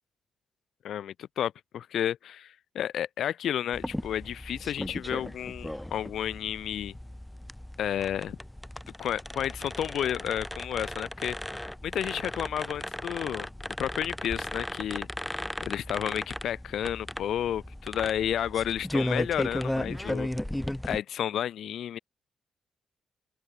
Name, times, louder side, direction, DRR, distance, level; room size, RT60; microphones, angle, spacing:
voice 1, 0.8-6.9 7.8-8.4 9.0-11.4 11.8-13.5 13.8-15.1 15.6-20.3 20.8-22.0, left 10 dB, 75° left, 0.3 m, -31 dB
sound 1, 3.7-21.0, left 1 dB, 5° left, 0.5 m, -36 dB
open air
cardioid pair, 130°, 0 cm